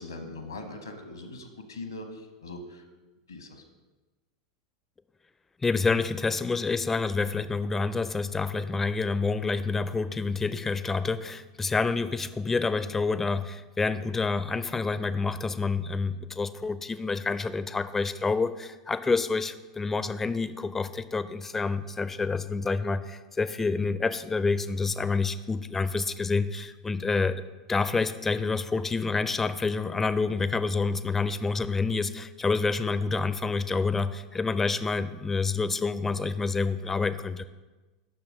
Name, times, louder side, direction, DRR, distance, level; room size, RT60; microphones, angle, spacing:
voice 1, 0.0-2.8 3.3-3.6, left 2 dB, 80° left, 6 dB, 1.0 m, -41 dB
voice 2, 5.6-27.4 27.7-37.4, left 4 dB, 15° left, 13 dB, 0.4 m, -28 dB
6.5 x 6.0 x 5.2 m, 1.2 s
figure-of-eight pair, 80°, 2 cm